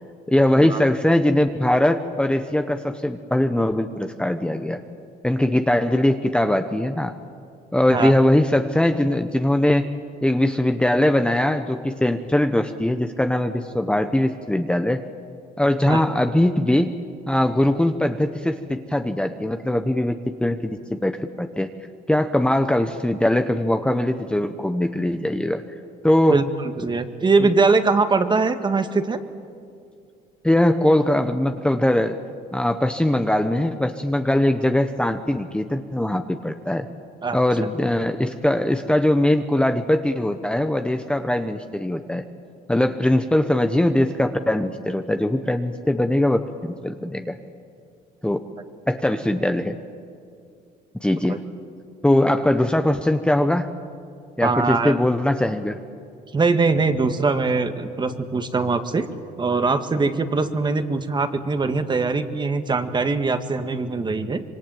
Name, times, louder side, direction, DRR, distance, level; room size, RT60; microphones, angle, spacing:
voice 1, 0.3-4.8 5.2-7.1 7.7-9.9 10.2-15.0 15.6-16.9 17.3-21.7 22.1-25.6 26.0-26.4 30.4-32.2 32.5-36.9 37.3-42.2 42.7-47.4 48.2-48.4 48.9-49.8 51.0-51.4 52.0-53.7 54.4-55.8, left 1 dB, 5° left, 7 dB, 1.1 m, -21 dB
voice 2, 26.8-29.2 37.2-37.4 51.3-51.4 54.4-54.9 56.3-59.1 59.4-64.4, right 4 dB, 25° right, 8 dB, 1.8 m, -22 dB
25.5 x 24.0 x 9.2 m, 2.3 s
cardioid pair, 110°, 17 cm